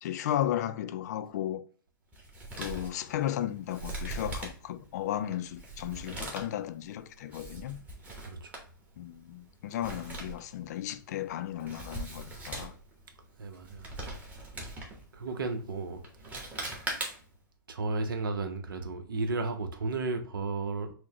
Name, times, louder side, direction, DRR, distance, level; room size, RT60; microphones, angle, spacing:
voice 1, 0.0-1.6 2.6-7.8 9.0-12.7, left 11 dB, 50° left, 0.4 m, -34 dB
Male speech man speaking, 2.1-17.4, right 2 dB, 15° right, 1.0 m, -42 dB
voice 2, 8.2-8.6 13.4-13.9 15.1-16.0 17.7-20.9, right 3 dB, 80° right, 0.8 m, -33 dB
6.2 x 2.2 x 2.9 m
hypercardioid pair, 140°, 11 cm